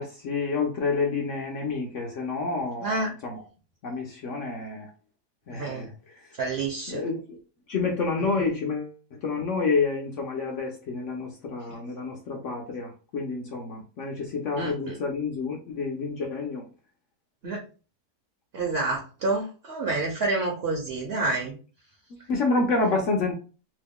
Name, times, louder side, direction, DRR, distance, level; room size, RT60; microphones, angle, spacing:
voice 1, 0.0-3.4 3.8-4.9 5.5-5.9 6.9-7.4 7.7-8.9 9.2-16.6 22.1-23.3, left 4 dB, 65° left, 0.8 m, -29 dB
voice 2, 5.5-5.8 6.4-7.0 8.4-8.5 11.7-11.8 14.6-15.0 17.4-17.6 18.5-21.5, right 3 dB, 50° right, 0.8 m, -28 dB
3.0 x 2.1 x 3.5 m
omnidirectional pair, 1.7 m